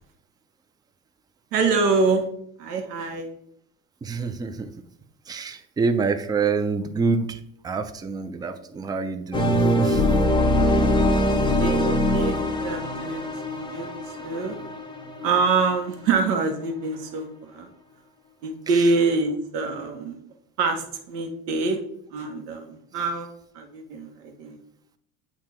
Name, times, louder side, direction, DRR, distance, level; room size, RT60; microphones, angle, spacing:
voice 1, 1.5-2.2 2.6-3.3 11.4-14.6 15.2-17.7 18.4-20.2 20.6-21.8 22.1-23.3 23.5-24.6, right 4 dB, 75° right, 5 dB, 1.3 m, -25 dB
voice 2, 4.0-4.7 5.3-10.0, right 4 dB, 10° right, 8 dB, 0.3 m, -27 dB
sound 1, 9.3-16.2, left 1 dB, 10° left, 1.0 m, -23 dB
8.6 x 2.9 x 4.3 m, 0.70 s
hypercardioid pair, 85°, 47 cm